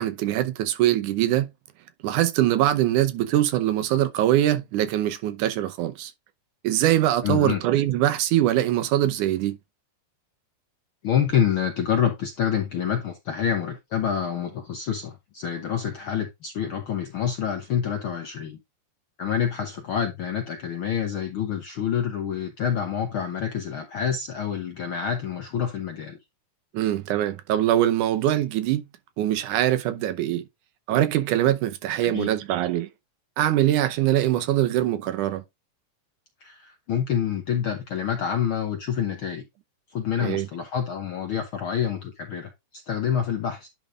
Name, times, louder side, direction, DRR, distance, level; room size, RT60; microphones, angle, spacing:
voice 1, 0.0-1.5 2.0-6.1 6.6-9.6 26.7-28.8 29.2-30.5 30.9-32.9 33.4-35.4 40.2-40.5, right 13 dB, 80° right, 2.3 m, -23 dB
voice 2, 7.2-7.6 11.0-18.6 19.2-26.2 32.0-32.3 36.4-39.4 39.9-43.7, left 8 dB, 70° left, 1.3 m, -27 dB
10.5 x 3.7 x 3.7 m
omnidirectional pair, 3.6 m